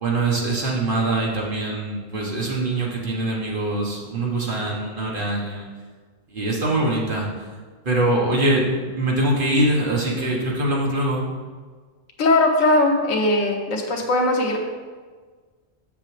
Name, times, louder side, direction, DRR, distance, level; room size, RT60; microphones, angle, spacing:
voice 1, 0.0-5.7 6.3-7.3 7.8-11.2, right 2 dB, 45° right, -3 dB, 1.4 m, -23 dB
voice 2, 12.2-14.6, left 2 dB, 90° left, 1 dB, 1.4 m, -19 dB
7.5 x 6.9 x 3.3 m, 1.5 s
omnidirectional pair, 1.3 m